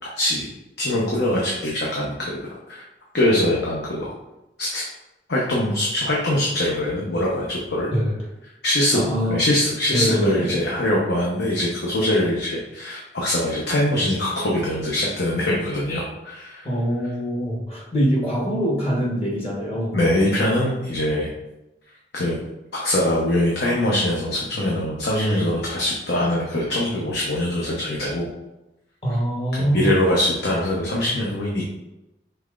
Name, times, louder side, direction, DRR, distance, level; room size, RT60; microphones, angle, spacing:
voice 1, 0.0-0.5 0.8-2.4 2.7-2.8 3.1-4.1 4.6-4.8 5.3-7.9 8.6-9.0 9.3-16.7 19.9-21.3 22.1-22.4 22.7-28.3 29.5-31.6, left 1 dB, 65° left, -4 dB, 0.8 m, -23 dB
voice 2, 8.9-9.4 9.9-10.6 16.6-20.0 29.0-29.9, equal, 35° left, -4 dB, 1.1 m, -23 dB
5.6 x 3.3 x 2.4 m, 0.93 s
head